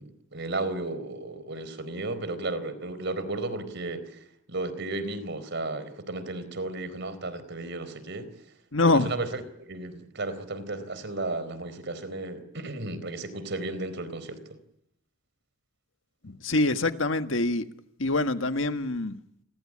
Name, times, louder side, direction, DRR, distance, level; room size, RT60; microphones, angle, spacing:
voice 1, 0.0-4.2 4.5-8.3 8.8-14.4, right 2 dB, 60° right, 4.2 m, -34 dB
voice 2, 8.7-9.1 16.2-17.6 18.0-19.2, left 2 dB, 70° left, 1.7 m, -25 dB
29.0 x 22.5 x 8.8 m
head